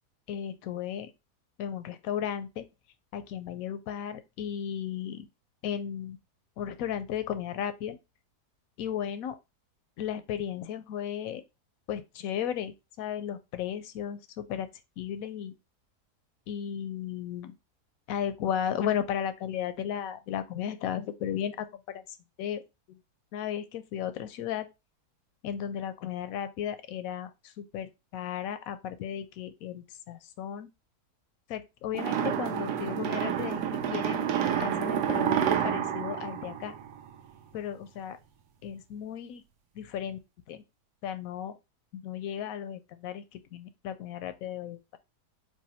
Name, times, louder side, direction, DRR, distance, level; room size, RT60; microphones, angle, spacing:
voice 1, 0.3-1.1 1.6-2.7 3.1-5.3 5.6-6.2 6.6-8.0 8.8-9.4 10.0-11.4 11.9-14.7 15.0-15.5 16.5-17.5 18.1-21.7 22.4-22.6 22.9-23.0 23.3-24.7 25.4-30.7 31.5-34.3 34.6-36.8 37.5-38.2 38.6-39.4 39.8-40.2 40.5-40.6 41.0-41.5 41.9-45.0, left 9 dB, 70° left, 0.9 m, -35 dB
sound 1, 31.9-37.3, right 9 dB, 80° right, 1.2 m, -29 dB
4.8 x 2.2 x 4.1 m
omnidirectional pair, 1.7 m